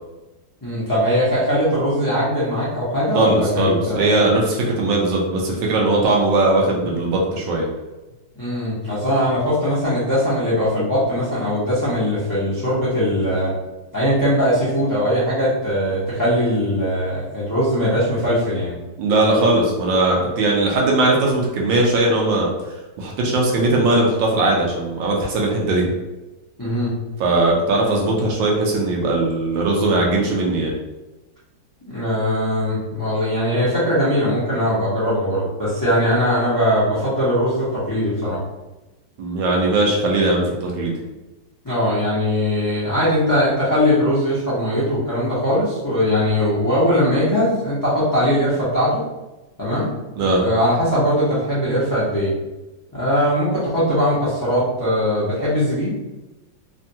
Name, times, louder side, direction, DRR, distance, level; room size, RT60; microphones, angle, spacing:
voice 1, 0.6-4.1 8.4-13.5 13.9-18.7 26.6-26.9 31.8-38.4 41.6-49.0 49.6-49.9 50.4-52.3 52.9-55.9, equal, 30° left, -10 dB, 0.4 m, -20 dB
voice 2, 3.1-7.6 19.0-22.5 23.0-25.9 27.2-30.7 39.2-40.9 50.2-50.4, right 2 dB, 80° right, -1 dB, 1.4 m, -19 dB
3.5 x 2.2 x 2.7 m, 1.1 s
omnidirectional pair, 2.0 m